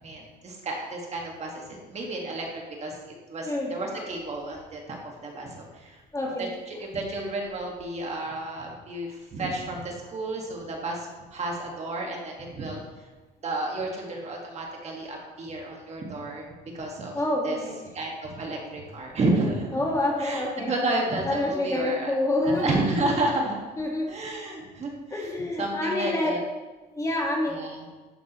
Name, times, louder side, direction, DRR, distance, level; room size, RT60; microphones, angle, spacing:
voice 1, 0.0-3.0 3.3-5.0 5.2-6.0 6.4-12.8 13.4-16.5 16.7-17.1 17.4-17.6 17.9-19.8 20.2-22.1 22.4-23.6 24.1-25.3 25.6-26.4 27.5-27.8, right 2 dB, 40° right, 0 dB, 1.7 m, -31 dB
voice 2, 3.4-4.0 6.1-6.5 17.1-17.8 19.7-20.7 21.2-22.8 23.8-24.2 25.1-26.3 26.9-27.6, left 1 dB, 20° left, -1 dB, 1.7 m, -27 dB
11.5 x 5.9 x 3.0 m, 1.2 s
cardioid pair, 110°, 17 cm